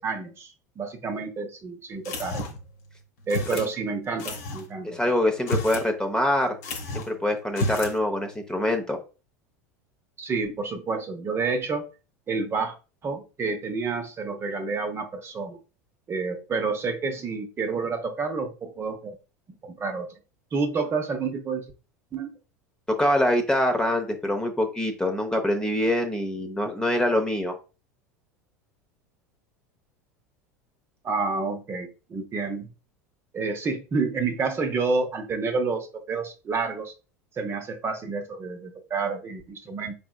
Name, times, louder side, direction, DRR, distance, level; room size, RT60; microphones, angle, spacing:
voice 1, 0.0-2.5 3.3-5.0 10.2-11.9 12.3-12.7 13.0-15.6 16.1-19.2 19.6-20.1 20.5-21.6 22.1-22.3 31.0-32.7 33.3-36.9 37.4-39.9, right 4 dB, 30° right, 0.8 m, -29 dB
sound 1, 2.0-2.7 3.3-3.7 4.2-4.6 5.3-5.9 6.2-6.3 6.6-7.1 7.5-8.0, left 1 dB, 60° left, 1.0 m, -31 dB
voice 2, 4.8-6.5 6.9-9.0 22.9-27.5, left 1 dB, 10° left, 0.7 m, -24 dB
4.7 x 3.4 x 2.3 m
figure-of-eight pair, 75°, 9 cm